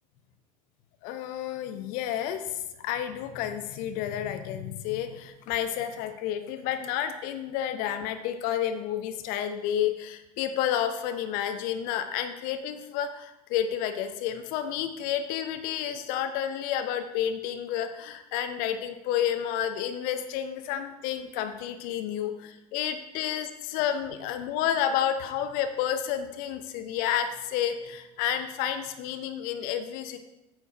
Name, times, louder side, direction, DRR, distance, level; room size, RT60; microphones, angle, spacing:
voice 1, 1.0-30.2, left 10 dB, 50° left, 8 dB, 0.8 m, -30 dB
8.7 x 4.5 x 5.8 m, 0.92 s
figure-of-eight pair, 75°, 19 cm